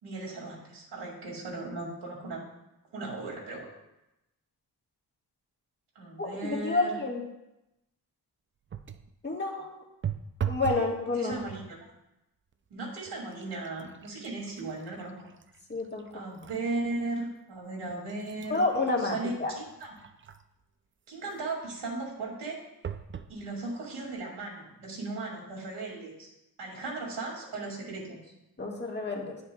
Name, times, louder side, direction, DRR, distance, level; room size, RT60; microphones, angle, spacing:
voice 1, 0.0-2.4 2.9-3.7 5.9-7.0 10.7-10.8 11.2-11.9 12.7-15.1 16.1-18.6 19.0-19.9 21.1-22.6 23.3-26.3 26.6-28.2, right 2 dB, 90° right, -2 dB, 2.4 m, -37 dB
voice 2, 6.2-7.2 9.2-9.8 10.5-11.4 15.7-16.0 18.5-19.5 28.6-29.4, left 3 dB, 25° left, -1 dB, 1.6 m, -29 dB
sound 1, 8.7-9.1 10.0-10.9 11.3-11.8 12.5-12.7 13.1-16.6 17.1-17.2 17.9-20.6 22.8-23.4 24.0-24.1 24.4-24.5, right 9 dB, 30° right, 0.4 m, -39 dB
10.5 x 7.4 x 2.3 m, 0.92 s
wide cardioid pair, 100°, 40 cm